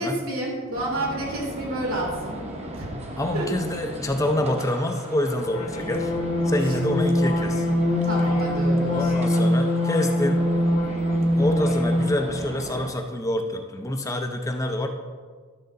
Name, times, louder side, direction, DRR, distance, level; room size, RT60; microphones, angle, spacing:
voice 1, 0.0-2.4 2.8-2.9 3.3-3.5 8.0-9.1, right 1 dB, 75° right, -2 dB, 2.7 m, -29 dB
sound 1, 0.7-12.9, right 1 dB, 30° right, 0.9 m, -37 dB
voice 2, 3.2-6.1 6.5-7.7 8.9-10.4 11.3-14.9, left 1 dB, 15° left, 4 dB, 0.5 m, -26 dB
sound 2, 5.4-12.2, left 1 dB, 35° left, 1.0 m, -23 dB
11.5 x 6.6 x 3.8 m, 1.5 s
head